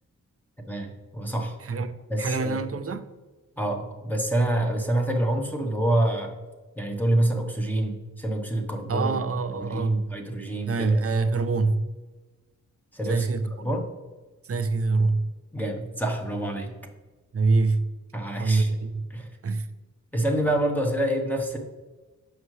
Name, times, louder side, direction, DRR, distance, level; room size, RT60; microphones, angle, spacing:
voice 1, 0.7-1.6 2.1-2.6 3.6-6.3 6.8-9.2 9.6-11.0 12.9-13.3 13.6-13.8 15.5-16.7 18.1-18.7 19.1-19.3 20.1-21.6, right 1 dB, 5° left, 1.1 m, -27 dB
voice 2, 2.2-3.1 8.9-10.1 10.6-11.9 13.1-13.5 14.4-15.3 17.3-17.9 18.4-19.1 19.4-19.7, right 3 dB, 45° right, 0.6 m, -25 dB
6.5 x 5.3 x 3.2 m
cardioid pair, 65°, 33 cm